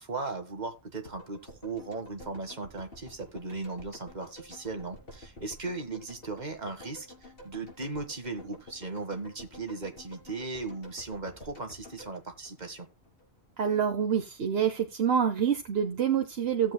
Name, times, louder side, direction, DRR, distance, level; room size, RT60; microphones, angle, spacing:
voice 1, 0.0-12.9, right 3 dB, 45° right, 1.7 m, -37 dB
sound 1, 1.1-13.2 13.5-13.6, left 1 dB, 60° left, 4.0 m, -50 dB
voice 2, 13.6-16.7, right 8 dB, 70° right, 1.1 m, -27 dB
17.0 x 7.7 x 2.2 m
omnidirectional pair, 1.1 m